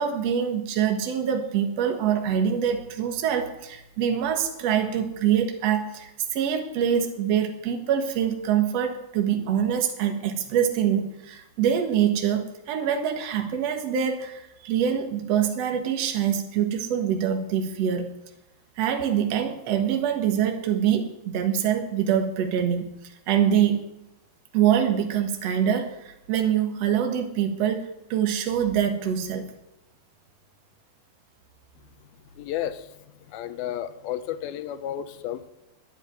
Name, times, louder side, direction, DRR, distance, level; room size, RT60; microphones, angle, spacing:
voice 1, 0.0-18.1 18.8-22.9 23.3-23.9 24.5-29.5, right 9 dB, 55° right, 5 dB, 2.0 m, -25 dB
voice 2, 32.4-32.9 33.3-35.5, left 11 dB, 75° left, 11 dB, 2.5 m, -32 dB
10.5 x 10.0 x 9.7 m, 0.87 s
omnidirectional pair, 4.7 m